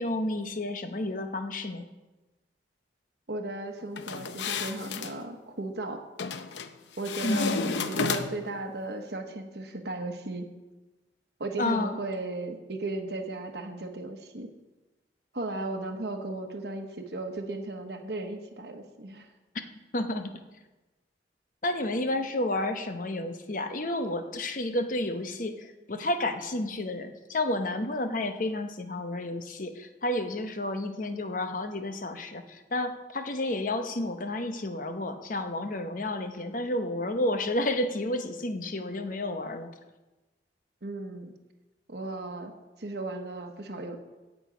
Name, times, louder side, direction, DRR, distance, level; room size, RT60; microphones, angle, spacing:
voice 1, 0.0-1.9 7.2-7.7 11.6-11.9 19.9-20.3 21.6-39.7, left 1 dB, 50° left, 7 dB, 0.9 m, -31 dB
voice 2, 3.3-6.0 7.0-10.5 11.4-14.5 15.3-19.3 40.8-41.3 41.9-42.5 42.8-44.0, right 2 dB, 65° right, 4 dB, 1.1 m, -35 dB
sound 1, 4.0-5.1 6.2-6.7 7.0-8.5, left 5 dB, 85° left, 0.6 m, -32 dB
16.5 x 6.2 x 5.0 m, 1.1 s
head